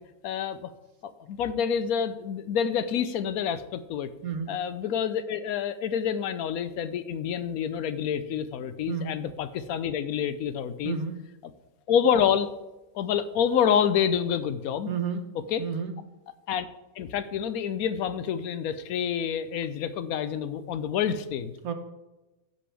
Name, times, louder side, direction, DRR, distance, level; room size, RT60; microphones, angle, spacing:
voice 1, 0.2-0.7 1.0-4.1 4.5-11.0 11.9-12.5 12.9-14.9 15.5-15.7 16.5-16.7 17.0-21.5, left 8 dB, 85° left, 12 dB, 1.1 m, -27 dB
voice 2, 4.2-4.6 8.9-9.1 10.8-11.3 14.9-15.3 15.6-16.0 21.6-21.7, right 6 dB, 85° right, 7 dB, 1.4 m, -31 dB
15.0 x 5.4 x 3.4 m, 1.0 s
omnidirectional pair, 1.5 m